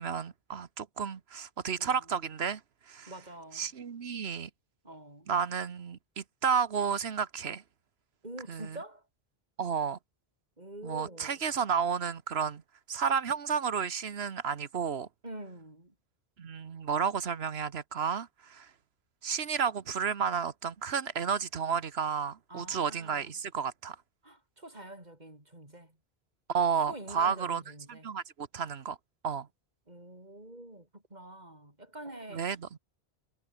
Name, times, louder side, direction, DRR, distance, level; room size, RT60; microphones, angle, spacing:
voice 1, 0.0-2.6 2.9-3.1 3.5-4.5 5.3-7.6 8.5-8.8 9.6-10.0 10.8-12.6 12.9-15.1 16.4-18.7 19.2-24.0 26.5-27.6 27.9-29.0 29.2-29.5 32.3-32.8, right 6 dB, 85° right, 1.4 m, -32 dB
voice 2, 3.1-3.7 4.8-5.3 8.2-9.0 10.6-11.4 15.2-15.9 22.5-23.3 24.2-26.0 26.9-28.1 29.9-32.5, right 1 dB, 45° right, 6.1 m, -46 dB
omnidirectional pair, 1.0 m